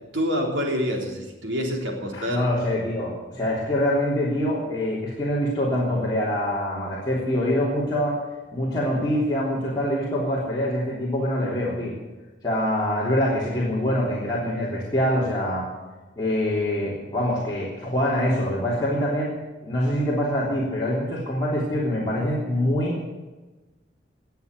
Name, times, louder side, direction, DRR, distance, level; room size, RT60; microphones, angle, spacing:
voice 1, 0.1-2.5, equal, 90° right, 1 dB, 3.5 m, -27 dB
voice 2, 2.1-8.2 8.5-11.9 12.4-15.6 16.2-19.3 19.6-23.0, left 1 dB, 20° left, -7 dB, 3.3 m, -24 dB
19.5 x 7.2 x 9.4 m, 1.2 s
head